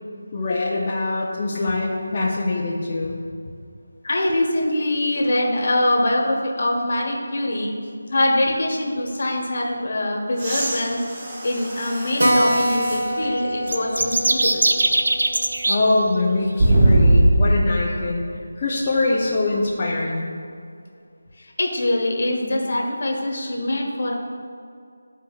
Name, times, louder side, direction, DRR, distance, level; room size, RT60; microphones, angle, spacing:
voice 1, 0.3-3.2 15.7-18.2 18.6-20.3, left 2 dB, 25° left, -7 dB, 0.6 m, -23 dB
voice 2, 4.0-7.7 8.1-11.0 11.4-14.6 21.4-24.1, left 1 dB, 50° left, 0 dB, 1.2 m, -23 dB
sound 1, 10.3-13.1 13.8-13.9 16.6-17.8 19.6-19.7, right 1 dB, 20° right, 0.6 m, -20 dB
Keyboard (musical), 12.2-17.3 17.5-17.6 17.9-18.0 18.3-18.4 18.9-19.3, equal, 85° right, 1.1 m, -26 dB
sound 2, 13.6-15.8, right 2 dB, 65° right, 0.6 m, -20 dB
12.5 x 4.6 x 2.3 m, 2.4 s
figure-of-eight pair, 175°, 0 cm